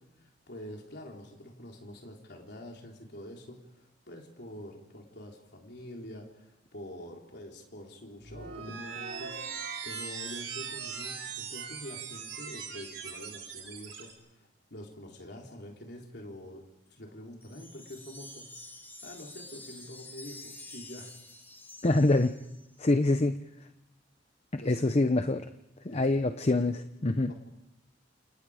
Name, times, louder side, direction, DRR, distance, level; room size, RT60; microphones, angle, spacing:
voice 1, 0.0-16.6 16.9-18.5 19.0-21.2 24.6-24.9 25.9-26.3 27.2-27.3, left 1 dB, 60° left, 0 dB, 3.8 m, -46 dB
sound 1, 8.2-14.1, right 6 dB, 90° right, 5.4 m, -40 dB
Wind chime, 17.4-22.8, left 2 dB, 10° left, 3.1 m, -48 dB
voice 2, 21.8-22.3 22.8-23.4 24.5-25.4 25.9-27.3, left 2 dB, 35° left, 9 dB, 0.8 m, -25 dB
29.0 x 27.5 x 5.0 m, 0.87 s
head